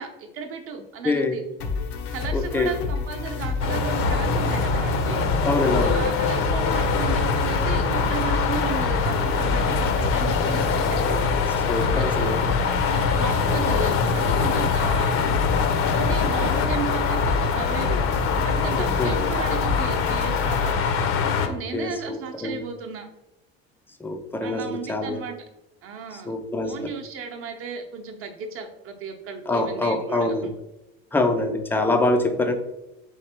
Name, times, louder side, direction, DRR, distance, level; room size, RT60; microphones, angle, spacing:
voice 1, 0.0-1.4 2.1-5.3 5.8-11.2 11.9-12.4 12.9-15.3 15.9-18.0 18.4-20.8 21.4-23.1 24.4-25.4 25.8-26.3 26.6-30.5, right 5 dB, 45° right, 4 dB, 0.8 m, -34 dB
voice 2, 1.0-1.4 2.3-2.7 5.4-6.0 11.7-12.4 18.7-19.2 21.4-22.6 24.0-25.2 26.3-26.9 29.5-30.5 31.1-32.5, left 2 dB, 5° left, 6 dB, 0.4 m, -25 dB
sound 1, 1.6-20.7, left 5 dB, 85° left, 0.8 m, -29 dB
sound 2, 3.6-21.5, left 5 dB, 45° left, 0.6 m, -23 dB
3.5 x 3.2 x 4.3 m, 0.93 s
supercardioid pair, 125°, 32 cm